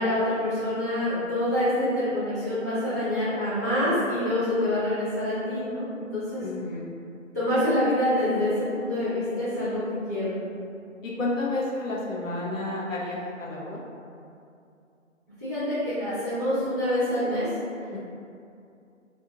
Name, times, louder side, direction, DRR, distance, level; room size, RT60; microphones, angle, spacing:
voice 1, 0.0-6.4 7.3-10.4 15.4-17.5, left 1 dB, 15° left, -18 dB, 0.7 m, -26 dB
voice 2, 6.4-6.8 11.0-13.8 17.9-18.0, left 2 dB, 75° left, -5 dB, 0.8 m, -31 dB
2.7 x 2.6 x 3.5 m, 2.5 s
figure-of-eight pair, 155°, 40 cm